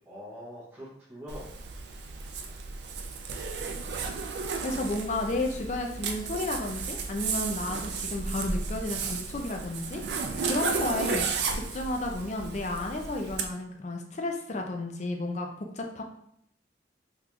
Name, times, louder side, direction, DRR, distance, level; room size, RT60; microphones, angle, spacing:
voice 1, 0.0-1.5 1.9-2.4 4.2-4.3, equal, 10° right, -11 dB, 0.8 m, -45 dB
Zipper (clothing), 1.3-13.5, right 5 dB, 60° right, 0.4 m, -34 dB
voice 2, 4.6-11.2 11.5-16.0, left 2 dB, 35° left, 3 dB, 0.4 m, -32 dB
3.8 x 3.0 x 2.3 m, 0.73 s
head